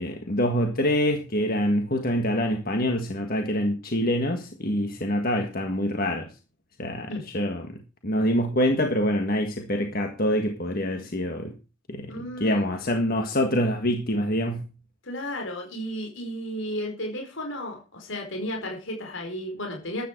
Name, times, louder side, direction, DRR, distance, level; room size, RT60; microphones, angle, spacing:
voice 1, 0.0-6.3 6.8-11.5 11.9-14.6, equal, 45° left, 4 dB, 1.7 m, -25 dB
voice 2, 12.1-12.7 15.0-20.0, equal, 65° left, 2 dB, 4.7 m, -33 dB
13.5 x 10.0 x 4.6 m, 0.32 s
head